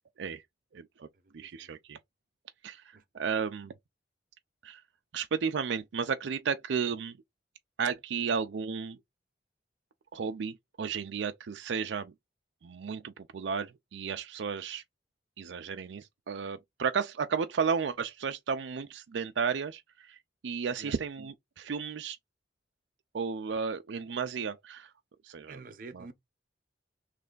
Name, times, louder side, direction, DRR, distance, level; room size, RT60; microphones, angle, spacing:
voice 1, 0.7-1.1 1.3-2.0 2.6-3.7 4.6-4.8 5.1-7.2 7.8-9.0 10.1-12.1 12.6-14.8 15.4-22.2 23.1-24.9 25.2-25.6 25.9-26.1, right 6 dB, 80° right, 0.4 m, -33 dB
voice 2, 25.5-26.1, right 4 dB, 50° right, 0.8 m, -46 dB
3.3 x 3.2 x 3.8 m
head